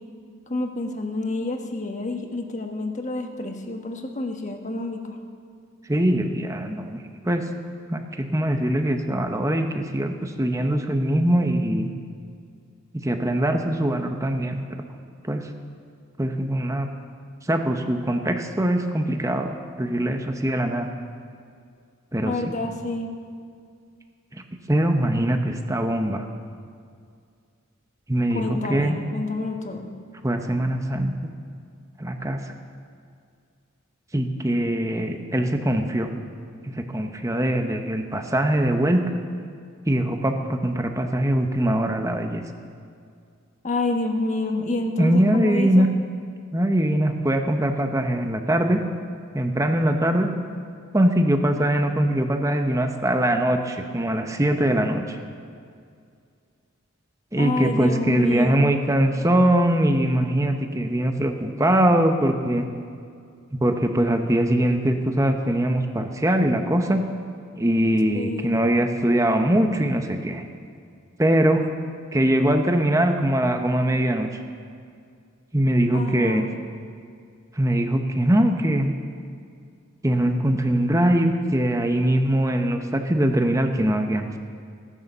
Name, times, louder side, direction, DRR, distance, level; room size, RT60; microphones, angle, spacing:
voice 1, 0.5-5.2 22.2-23.1 28.3-29.9 43.6-45.9 57.4-58.7 68.1-68.6 75.9-76.5, left 2 dB, 35° left, 3 dB, 1.3 m, -28 dB
voice 2, 5.9-7.5 7.9-11.9 12.9-14.6 15.2-15.5 16.2-16.9 17.5-20.9 22.1-22.5 24.3-24.4 24.7-26.3 28.1-29.0 30.2-31.1 32.0-32.4 34.1-36.1 36.6-39.1 39.9-42.4 45.0-45.9 46.5-48.8 49.3-50.3 50.9-55.2 57.3-62.7 63.6-67.1 67.6-70.4 71.2-71.6 72.1-74.3 75.5-76.4 77.5-78.9 80.0-84.4, right 1 dB, 15° right, 5 dB, 0.9 m, -22 dB
17.0 x 11.0 x 6.7 m, 2.3 s
head